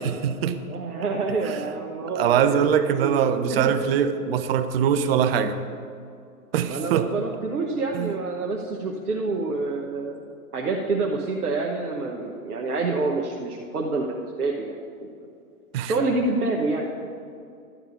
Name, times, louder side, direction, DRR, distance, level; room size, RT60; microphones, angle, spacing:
voice 1, 0.0-0.6 1.4-1.6 2.2-5.6 6.5-7.1 7.9-8.1 15.7-15.9, right 8 dB, 40° right, 11 dB, 0.7 m, -23 dB
voice 2, 0.7-3.2 3.5-3.8 6.7-10.2 10.5-15.1 15.8-16.9, right 3 dB, 85° right, -1 dB, 1.2 m, -27 dB
11.5 x 5.2 x 8.1 m, 2.4 s
hypercardioid pair, 125°, 44 cm